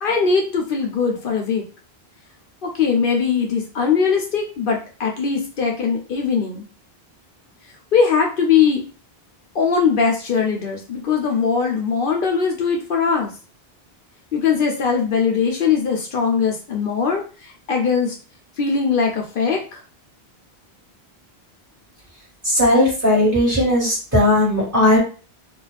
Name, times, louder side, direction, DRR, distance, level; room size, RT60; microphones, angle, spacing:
voice 1, 0.0-1.6 2.6-6.7 7.9-8.8 9.5-13.3 14.3-18.1 18.6-19.8, left 6 dB, 65° left, 2 dB, 0.7 m, -20 dB
voice 2, 22.4-25.0, left 1 dB, 10° right, -6 dB, 1.3 m, -17 dB
2.4 x 2.3 x 3.2 m, 0.37 s
omnidirectional pair, 1.1 m